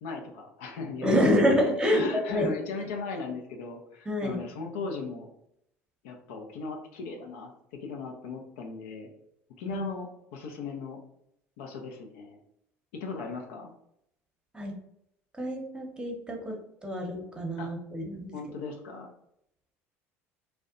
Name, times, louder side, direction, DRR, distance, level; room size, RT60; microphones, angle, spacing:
voice 1, 0.0-5.3 6.0-9.1 9.6-11.0 11.6-12.4 12.9-13.7 17.6-17.7 18.3-19.1, left 4 dB, 75° left, 3 dB, 0.5 m, -38 dB
voice 2, 1.0-2.5 4.1-4.4 9.7-9.8 14.5-14.7 15.4-16.5 16.8-18.3, equal, 10° right, 0 dB, 0.8 m, -27 dB
2.5 x 2.1 x 2.5 m, 0.77 s
hypercardioid pair, 70°, 7 cm